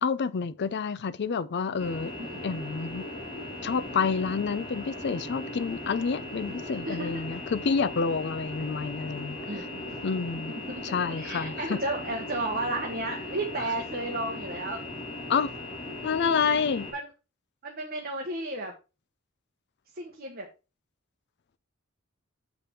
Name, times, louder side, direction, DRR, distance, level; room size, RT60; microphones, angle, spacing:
voice 1, 0.0-2.1 2.4-3.0 3.6-9.4 10.0-10.5 10.8-11.8 15.3-15.5 16.0-16.9, left 5 dB, 55° left, 0.5 m, -28 dB
sound 1, 1.8-16.9, left 2 dB, 25° left, 2.2 m, -38 dB
voice 2, 2.2-2.7 6.8-7.4 9.5-10.0 10.7-14.8 16.9-17.1 17.6-18.7 19.9-20.5, right 2 dB, 45° right, 1.2 m, -33 dB
7.1 x 5.1 x 4.3 m
head